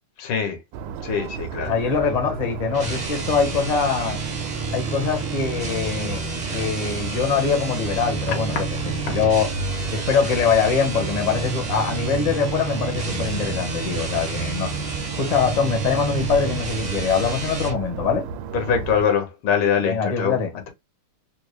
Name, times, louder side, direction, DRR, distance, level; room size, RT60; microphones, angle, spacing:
voice 1, 0.2-0.6 1.0-1.7 9.1-9.2 18.5-20.4, left 7 dB, 75° left, 1.9 m, -23 dB
sound 1, 0.7-19.1, right 6 dB, 75° right, 1.2 m, -33 dB
voice 2, 1.7-4.2 4.7-6.2 6.5-9.5 9.9-14.7 15.1-18.3 19.8-20.5, left 5 dB, 35° left, 0.7 m, -23 dB
sound 2, 2.7-17.8, right 3 dB, 50° right, 0.4 m, -30 dB
4.0 x 2.1 x 3.1 m
omnidirectional pair, 2.4 m